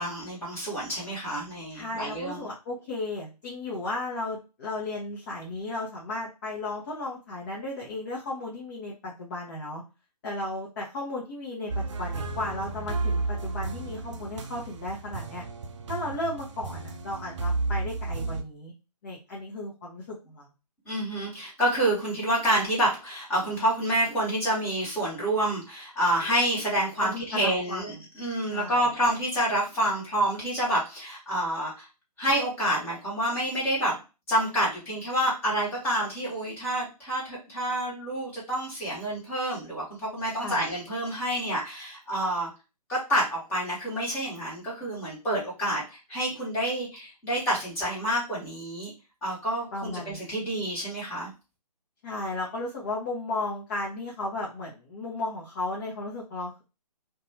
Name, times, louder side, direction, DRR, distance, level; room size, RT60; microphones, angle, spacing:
voice 1, 0.0-2.5 20.8-31.9 32.2-33.9 34.3-42.5 42.9-48.9 49.2-51.3, right 1 dB, 10° left, -7 dB, 1.1 m, -28 dB
voice 2, 1.7-9.8 10.2-15.4 15.9-18.7 19.0-20.5 27.0-28.0 28.5-28.8 40.4-40.6 49.7-50.3 52.0-56.6, left 2 dB, 30° left, -4 dB, 0.7 m, -34 dB
sound 1, 11.7-18.4, right 3 dB, 50° right, 0.4 m, -32 dB
2.6 x 2.3 x 2.7 m, 0.29 s
figure-of-eight pair, 145°, 21 cm